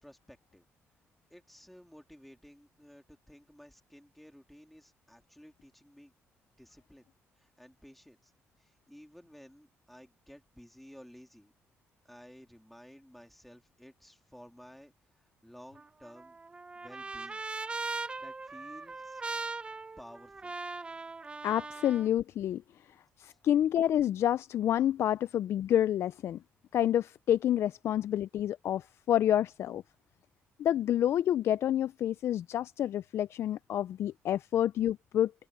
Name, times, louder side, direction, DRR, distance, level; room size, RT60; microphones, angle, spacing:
voice 1, 0.0-0.6 1.3-6.1 6.6-7.1 7.3-8.3 8.6-11.5 12.0-16.4 16.7-17.4 18.2-19.2 20.0-20.5 23.2-23.4, equal, 5° left, 3.3 m, -54 dB
Trumpet, 15.8-22.1, right 3 dB, 20° right, 0.6 m, -40 dB
voice 2, 21.4-22.6 23.2-26.4 26.7-29.8 30.6-35.3, left 11 dB, 65° left, 0.4 m, -28 dB
open air
cardioid pair, 100°, 5 cm